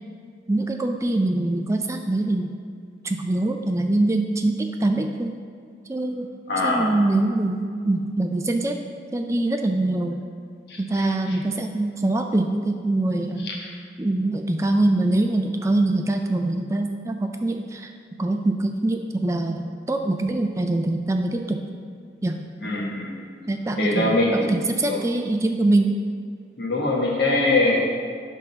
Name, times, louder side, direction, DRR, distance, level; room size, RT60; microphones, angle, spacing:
voice 1, 0.5-2.6 3.0-5.3 5.9-6.3 6.6-10.2 10.8-13.6 14.0-17.9 18.2-21.6 22.2-22.4 23.5-26.0, right 2 dB, 15° right, 5 dB, 0.3 m, -24 dB
voice 2, 6.5-6.9 10.7-10.8 22.6-23.2 23.8-24.5 24.9-25.0 26.6-27.8, left 2 dB, 70° left, -1 dB, 1.4 m, -22 dB
11.0 x 3.6 x 5.7 m, 2.2 s
head